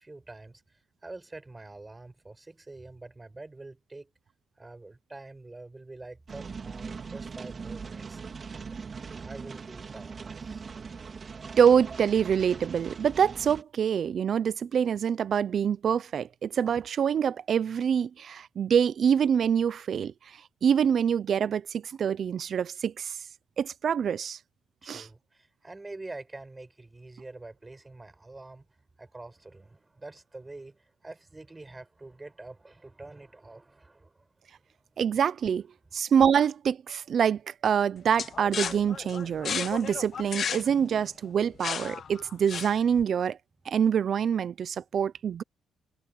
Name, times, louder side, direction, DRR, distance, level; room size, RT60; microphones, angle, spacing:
voice 1, 0.0-4.1 4.6-8.2 8.5-8.8 9.2-10.6 24.8-28.7 29.0-35.0, right 2 dB, 20° right, 6.8 m, -46 dB
sound 1, 6.3-13.6, right 5 dB, 40° right, 3.5 m, -41 dB
voice 2, 11.6-20.1 20.6-23.2 23.6-24.4 24.9-25.1 35.0-35.7 35.9-43.4 43.7-45.4, right 8 dB, 55° right, 0.7 m, -25 dB
sound 2, 38.2-43.0, left 7 dB, 55° left, 0.8 m, -34 dB
cardioid pair, 90°, 0 cm